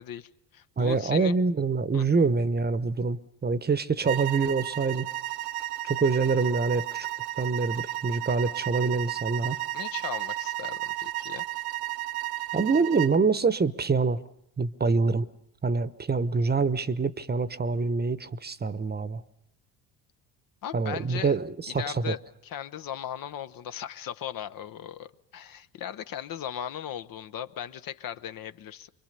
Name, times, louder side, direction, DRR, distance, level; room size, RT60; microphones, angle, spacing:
voice 1, 0.0-1.4 1.9-2.0 9.7-11.4 20.6-21.3 21.7-28.9, left 10 dB, 55° left, 0.9 m, -38 dB
voice 2, 0.8-5.1 5.9-7.1 7.4-9.6 12.5-14.2 14.6-15.3 15.6-19.2 20.7-22.1, right 4 dB, 25° right, 1.0 m, -25 dB
sound 1, 4.0-13.2, right 14 dB, 70° right, 0.8 m, -33 dB
25.5 x 22.5 x 6.8 m
supercardioid pair, 70°, 40 cm